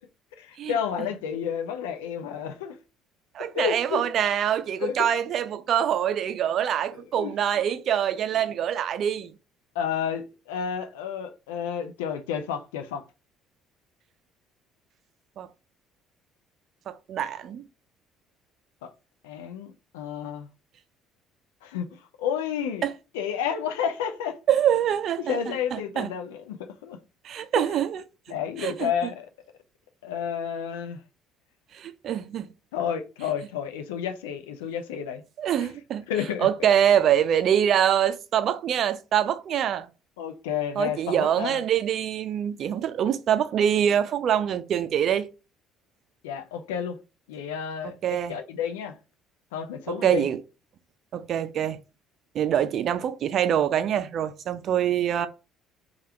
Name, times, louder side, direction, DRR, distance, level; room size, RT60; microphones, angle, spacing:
voice 1, 0.4-2.8 3.5-4.0 4.8-5.1 7.2-7.3 8.4-8.5 9.7-13.0 18.8-18.9 19.2-20.5 21.6-22.9 23.1-24.4 25.2-27.0 27.6-27.8 28.3-29.3 30.0-31.0 32.7-35.2 35.6-35.7 36.1-36.5 40.2-41.6 46.2-47.0 47.3-49.0 49.5-50.3, left 8 dB, 70° left, 0.5 m, -31 dB
voice 2, 3.3-9.3 15.4-15.5 16.9-17.6 22.8-22.9 24.5-25.4 25.7-26.1 27.2-28.0 28.6-28.9 31.7-32.5 35.4-36.0 36.4-39.9 40.8-45.3 48.0-48.4 49.9-50.4 51.1-51.8 52.3-55.3, right 9 dB, 50° right, 0.5 m, -24 dB
3.3 x 2.4 x 4.3 m
figure-of-eight pair, 55°, 0 cm